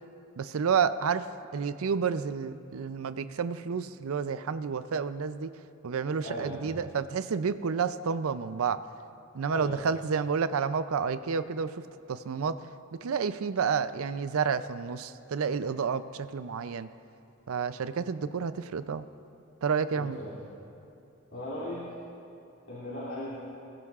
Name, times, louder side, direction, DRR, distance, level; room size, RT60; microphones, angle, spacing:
voice 1, 0.4-1.3 1.5-5.5 5.8-8.8 9.3-11.7 12.1-12.6 13.0-16.9 17.5-19.0 19.6-20.2, right 6 dB, 85° right, 13 dB, 0.4 m, -30 dB
voice 2, 6.2-6.6 9.5-9.8 19.9-20.3 21.3-21.9 22.7-23.4, left 1 dB, 70° left, -11 dB, 2.8 m, -37 dB
21.0 x 12.5 x 2.4 m, 2.7 s
head